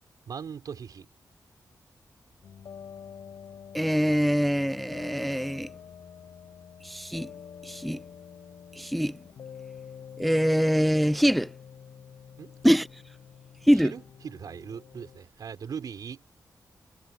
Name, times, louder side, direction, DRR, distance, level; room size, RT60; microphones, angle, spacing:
voice 1, 0.3-1.1 12.4-12.5 13.7-16.2, right 7 dB, 70° right, 5.1 m, -39 dB
sound 1, 2.4-15.2, left 7 dB, 85° left, 4.9 m, -47 dB
voice 2, 3.7-5.7 6.8-7.3 7.6-8.0 8.8-9.2 10.2-11.5 12.6-12.9 13.7-13.9, equal, ahead, 0.3 m, -24 dB
wide cardioid pair, 150°, 7 cm